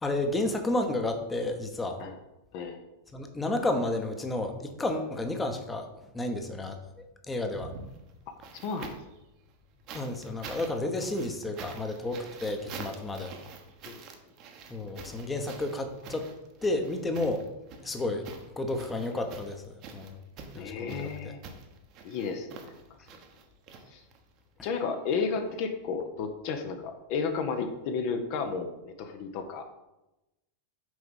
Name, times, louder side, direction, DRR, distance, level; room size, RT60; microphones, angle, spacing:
voice 1, 0.0-2.0 3.1-5.9 6.1-6.8 7.3-7.7 9.9-13.3 14.7-16.3 16.6-17.5 17.8-18.3 18.6-20.2 20.5-21.3, left 2 dB, 10° left, 6 dB, 0.9 m, -31 dB
sound 1, 7.5-9.2 9.9-24.4 25.5-25.6, right 5 dB, 40° right, 1.0 m, -46 dB
voice 2, 20.5-21.4 22.0-22.7 23.9-24.0 24.6-28.7 29.0-29.6, left 5 dB, 45° left, 5 dB, 0.7 m, -32 dB
6.3 x 4.8 x 5.4 m, 0.97 s
figure-of-eight pair, 90°, 0 cm